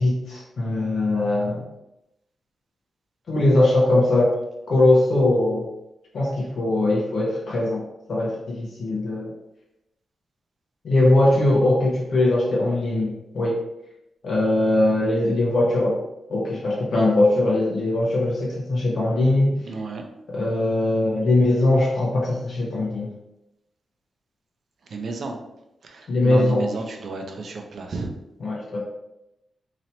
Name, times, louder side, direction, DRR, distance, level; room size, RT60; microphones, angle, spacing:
voice 1, 0.0-1.6 3.3-4.3 4.7-5.7 6.1-7.8 8.1-9.3 10.8-13.6 14.2-16.0 16.3-19.5 20.3-23.1 26.1-26.7 28.4-28.8, left 2 dB, 55° left, -4 dB, 0.9 m, -21 dB
voice 2, 19.7-20.0 24.9-25.4 25.8-28.1, right 3 dB, 50° right, 3 dB, 0.6 m, -32 dB
3.0 x 2.8 x 4.3 m, 0.89 s
wide cardioid pair, 175°, 0 cm